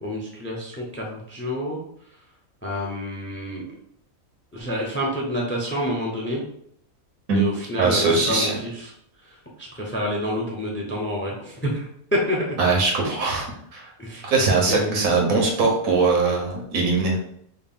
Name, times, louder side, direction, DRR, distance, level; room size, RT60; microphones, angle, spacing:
voice 1, 0.0-1.8 2.6-3.6 4.5-6.4 7.3-8.9 9.3-12.4 14.0-14.3 14.7-15.0, equal, 15° left, -1 dB, 0.5 m, -28 dB
voice 2, 7.8-8.6 12.6-13.5 13.7-13.9 14.2-17.2, right 3 dB, 90° right, 0 dB, 1.4 m, -21 dB
4.2 x 2.1 x 3.6 m, 0.67 s
omnidirectional pair, 1.4 m